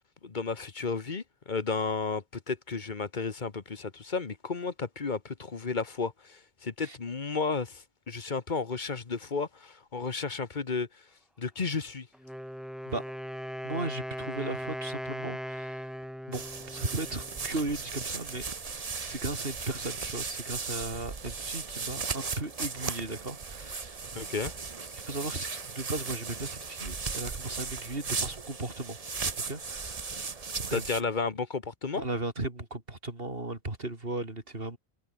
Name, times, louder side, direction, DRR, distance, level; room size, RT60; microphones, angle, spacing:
voice 1, 0.2-11.0 11.4-12.1 24.1-24.5 30.7-32.0, left 4 dB, 50° left, 1.4 m, -33 dB
Wind instrument woodwind instrument, 12.1-17.9, equal, ahead, 1.5 m, -39 dB
voice 2, 13.6-15.9 16.3-16.4 16.7-18.4 18.7-24.0 24.9-29.0 29.5-30.3 30.6-31.0 32.0-34.8, right 2 dB, 65° right, 4.0 m, -36 dB
sound 1, 16.3-31.0, right 4 dB, 40° right, 1.1 m, -37 dB
omnidirectional pair, 1.0 m